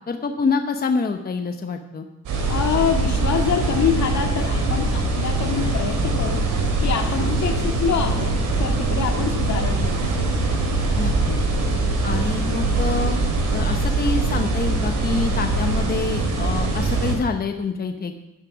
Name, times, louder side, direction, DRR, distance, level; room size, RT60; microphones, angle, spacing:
voice 1, 0.1-2.1 7.2-7.3 11.0-11.4 12.0-13.3 13.5-18.1, left 4 dB, 30° left, 5 dB, 0.9 m, -26 dB
sound 1, 2.3-17.2, right 2 dB, 80° right, 3.7 m, -22 dB
voice 2, 2.5-6.5 6.8-10.1 12.1-12.2, left 7 dB, 65° left, 3 dB, 2.0 m, -25 dB
10.0 x 10.0 x 6.1 m, 0.98 s
cardioid pair, 90°, 30 cm